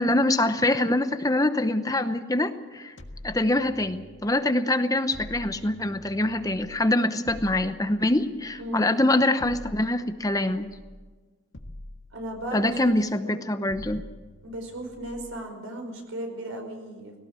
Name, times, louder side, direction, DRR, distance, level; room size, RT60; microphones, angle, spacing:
voice 1, 0.0-2.9 3.2-10.7 12.5-14.0, left 1 dB, 15° left, 9 dB, 0.8 m, -24 dB
sound 1, 3.0-4.3 5.1-6.8 7.3-8.7 9.4-11.0 11.5-12.9 13.7-15.3, left 1 dB, 65° left, 1.7 m, -45 dB
voice 2, 8.6-9.0 9.3-9.4 12.1-12.9 13.2-13.3 14.4-17.1, right 1 dB, 85° right, 4 dB, 5.1 m, -36 dB
18.5 x 17.5 x 8.3 m, 1.4 s
head